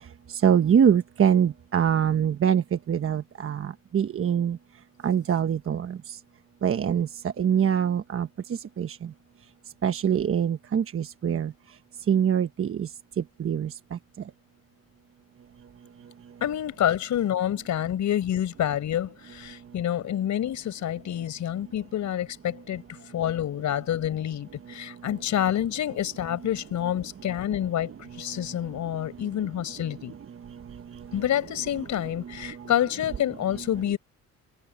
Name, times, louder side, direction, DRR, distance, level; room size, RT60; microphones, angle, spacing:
voice 1, 0.4-4.6 5.0-6.0 6.6-7.1 7.4-8.3 8.8-9.0 9.8-11.5 12.1-12.9 13.4-13.7, right 8 dB, 45° right, 1.2 m, -23 dB
voice 2, 16.4-30.1 31.1-34.0, left 11 dB, 70° left, 5.3 m, -28 dB
open air
cardioid pair, 90°, 30 cm